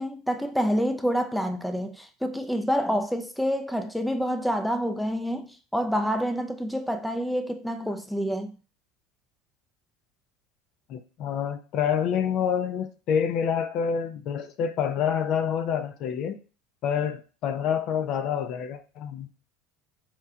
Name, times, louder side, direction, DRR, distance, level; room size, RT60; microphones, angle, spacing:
voice 1, 0.0-8.5, equal, ahead, 0.4 m, -27 dB
voice 2, 10.9-16.4 16.8-19.3, left 8 dB, 55° left, 0.5 m, -27 dB
4.4 x 2.2 x 3.6 m
supercardioid pair, 100°, 0 cm